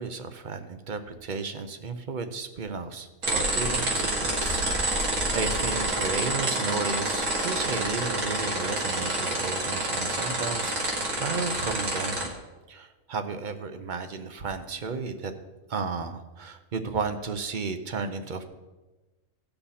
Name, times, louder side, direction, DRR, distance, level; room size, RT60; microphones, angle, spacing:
voice 1, 0.0-12.4 12.7-15.3 15.7-18.4, right 4 dB, 45° right, 9 dB, 0.8 m, -33 dB
sound 1, 3.2-12.3, right 2 dB, 70° right, 2.2 m, -28 dB
16.5 x 5.6 x 4.2 m, 1.2 s
omnidirectional pair, 1.4 m